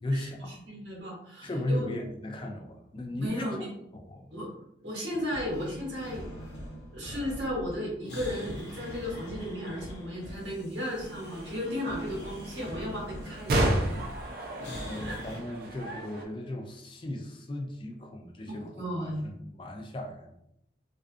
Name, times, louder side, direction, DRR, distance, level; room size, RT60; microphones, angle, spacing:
voice 1, 0.0-0.9 1.4-4.4 14.9-20.4, left 1 dB, 25° left, 3 dB, 0.3 m, -36 dB
voice 2, 0.7-2.0 3.2-3.7 4.3-4.5 4.8-6.2 6.9-14.0 15.0-15.2 18.5-19.3, equal, 85° right, -3 dB, 1.0 m, -35 dB
sound 1, 5.1-15.4, equal, 70° left, 0.8 m, -43 dB
sound 2, 11.2-16.2, right 1 dB, 55° right, 0.4 m, -32 dB
2.4 x 2.3 x 2.4 m, 0.77 s
head